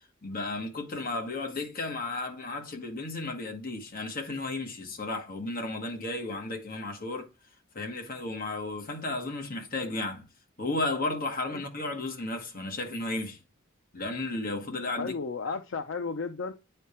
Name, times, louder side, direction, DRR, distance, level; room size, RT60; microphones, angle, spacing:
voice 1, 0.2-7.3 7.7-10.3 10.6-13.4 13.9-15.2 15.5-15.6, left 2 dB, 45° left, 1.4 m, -34 dB
voice 2, 15.0-16.5, left 4 dB, 70° left, 0.5 m, -33 dB
9.3 x 3.3 x 4.3 m
head